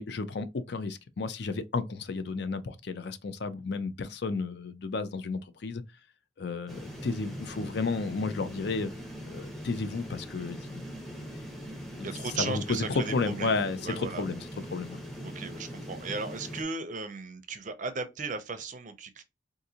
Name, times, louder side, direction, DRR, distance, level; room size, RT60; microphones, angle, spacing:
voice 1, 0.0-5.8 6.4-8.9 9.3-11.0 12.0-12.1 12.4-14.4 14.7-15.0, left 4 dB, 55° left, 0.5 m, -32 dB
sound 1, 6.7-16.6, equal, ahead, 0.7 m, -41 dB
voice 2, 12.0-14.2 15.2-19.2, right 4 dB, 40° right, 0.5 m, -36 dB
3.8 x 2.6 x 2.8 m
head